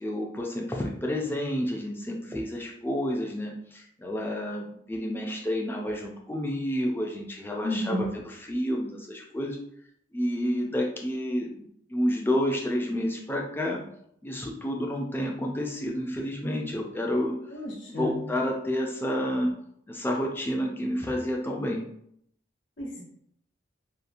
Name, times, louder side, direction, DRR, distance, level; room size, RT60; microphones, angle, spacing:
voice 1, 0.0-9.6 10.1-13.8 14.2-17.3 17.9-19.5 19.9-21.8, equal, 10° left, 0 dB, 0.3 m, -30 dB
voice 2, 7.6-8.1 17.5-18.1 22.8-23.0, left 1 dB, 90° left, -4 dB, 0.8 m, -31 dB
2.8 x 2.3 x 2.5 m, 0.71 s
head